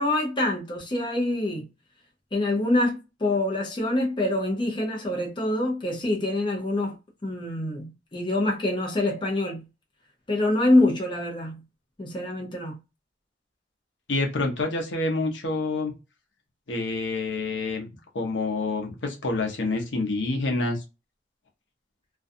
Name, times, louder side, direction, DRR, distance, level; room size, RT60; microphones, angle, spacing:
voice 1, 0.0-1.7 2.3-7.0 7.2-9.6 10.3-11.6 12.0-12.8, left 1 dB, 25° left, 0.6 m, -25 dB
voice 2, 14.1-15.9 16.7-17.9 18.1-20.8, left 2 dB, 75° left, 0.7 m, -27 dB
2.4 x 2.3 x 2.5 m
head